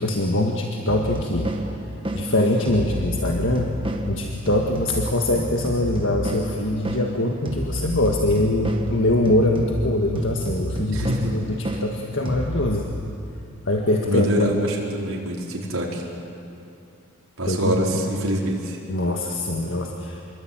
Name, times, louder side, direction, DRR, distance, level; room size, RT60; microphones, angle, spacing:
voice 1, 0.0-1.8 2.1-3.8 4.1-12.9 13.7-14.5 17.4-17.8 18.9-20.2, left 1 dB, 60° left, 1 dB, 1.8 m, -23 dB
sound 1, 0.9-12.7, right 1 dB, 25° right, 1.7 m, -30 dB
voice 2, 10.9-11.3 14.0-16.0 17.4-18.8, equal, 70° right, -2 dB, 4.9 m, -25 dB
26.0 x 22.5 x 9.1 m, 2.7 s
head